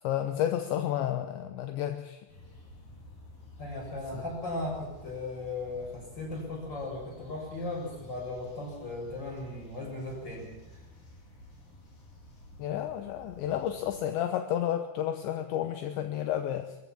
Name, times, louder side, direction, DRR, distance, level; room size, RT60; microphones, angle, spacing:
voice 1, 0.0-2.2 4.1-4.2 12.6-16.8, left 11 dB, 75° left, 7 dB, 3.0 m, -31 dB
sound 1, 2.3-14.0, left 1 dB, 45° left, 5.5 m, -51 dB
voice 2, 3.6-10.8, left 2 dB, 20° left, -1 dB, 7.5 m, -37 dB
22.5 x 14.5 x 8.8 m, 0.98 s
omnidirectional pair, 5.7 m